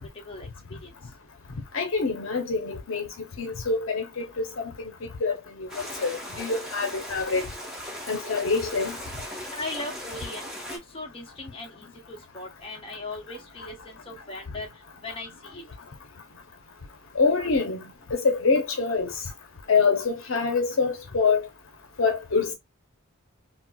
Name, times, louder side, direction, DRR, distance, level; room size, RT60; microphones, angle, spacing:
voice 1, 0.2-0.9 9.5-14.7 15.0-15.6, left 2 dB, 25° left, 0.9 m, -38 dB
voice 2, 1.7-3.1 3.4-4.2 4.6-4.7 5.2-7.5 8.1-9.0 17.1-17.8 18.1-19.1 19.7-21.5 22.0-22.5, left 4 dB, 70° left, 0.7 m, -25 dB
sound 1, 5.7-10.8, equal, 5° right, 0.9 m, -38 dB
4.3 x 2.0 x 2.3 m
head